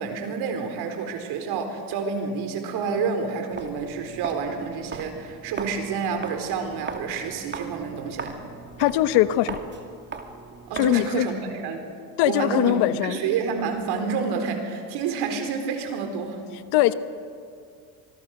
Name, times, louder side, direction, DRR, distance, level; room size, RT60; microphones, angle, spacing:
voice 1, 0.0-8.4 10.7-11.9 12.2-16.4, right 5 dB, 60° right, 5 dB, 4.3 m, -29 dB
Walk footsteps, 3.5-11.1, right 4 dB, 25° right, 2.3 m, -39 dB
voice 2, 8.8-9.6 10.8-11.3 12.2-13.2 16.7-16.9, left 14 dB, 65° left, 13 dB, 1.2 m, -21 dB
26.0 x 20.5 x 6.6 m, 2.2 s
supercardioid pair, 110°, 44 cm